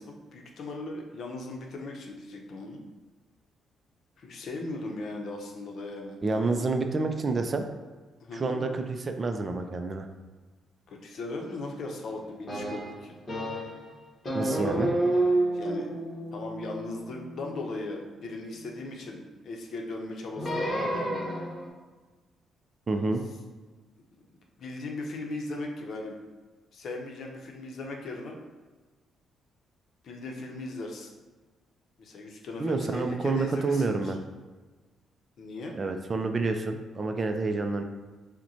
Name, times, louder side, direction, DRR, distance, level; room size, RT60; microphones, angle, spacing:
voice 1, 0.0-2.8 4.2-6.5 8.2-8.6 10.9-13.2 15.5-15.9 16.3-21.1 22.9-23.1 24.2-24.3 24.6-26.2 26.7-28.4 30.0-31.1 32.0-34.1 35.4-35.8, left 2 dB, 60° left, 1 dB, 0.7 m, -38 dB
voice 2, 6.2-7.6 8.3-10.1 14.3-14.9 22.9-23.2 32.6-34.2 35.7-37.8, right 3 dB, 35° right, 5 dB, 0.4 m, -28 dB
sound 1, 12.5-13.8 14.2-18.6 20.4-21.7, right 1 dB, 30° left, 1.1 m, -30 dB
5.6 x 2.1 x 2.8 m, 1.3 s
cardioid pair, 90°, 0 cm